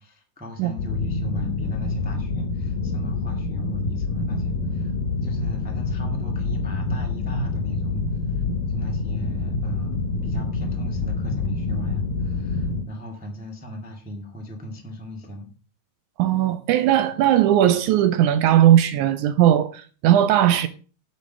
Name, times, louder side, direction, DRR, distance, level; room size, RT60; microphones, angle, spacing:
voice 1, 0.0-5.0 5.2-8.1 8.3-15.5, equal, 10° right, 0.4 m, -38 dB
sound 1, 0.8-12.8, left 3 dB, 80° left, 2.6 m, -26 dB
voice 2, 16.2-20.7, right 11 dB, 80° right, 1.8 m, -18 dB
8.4 x 6.2 x 6.1 m
omnidirectional pair, 3.9 m